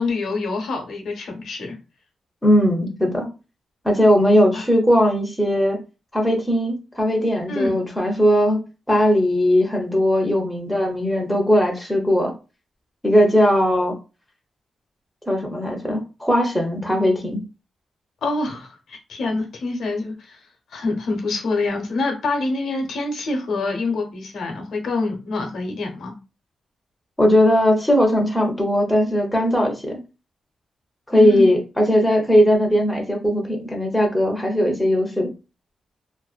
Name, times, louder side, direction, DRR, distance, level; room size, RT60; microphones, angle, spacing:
voice 1, 0.0-1.8 4.5-4.7 7.5-7.8 18.2-20.4 20.7-26.1 31.1-31.5, left 3 dB, 70° left, 2 dB, 0.7 m, -26 dB
voice 2, 2.4-3.3 3.8-5.8 6.1-8.6 8.9-12.3 13.0-13.9 15.3-17.4 27.2-30.0 31.1-35.3, equal, 5° left, 1 dB, 0.4 m, -18 dB
2.5 x 2.1 x 2.3 m, 0.31 s
wide cardioid pair, 175°, 0 cm